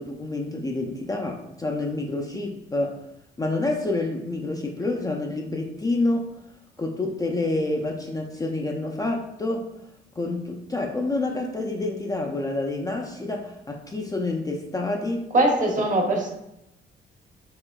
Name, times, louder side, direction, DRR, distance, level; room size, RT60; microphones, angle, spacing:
voice 1, 0.0-3.0 3.4-6.3 6.8-9.7 10.2-15.2, left 2 dB, 20° left, 1 dB, 0.4 m, -28 dB
voice 2, 15.3-16.3, right 1 dB, 40° right, 2 dB, 0.9 m, -21 dB
4.7 x 3.1 x 2.3 m, 0.85 s
cardioid pair, 90°, 20 cm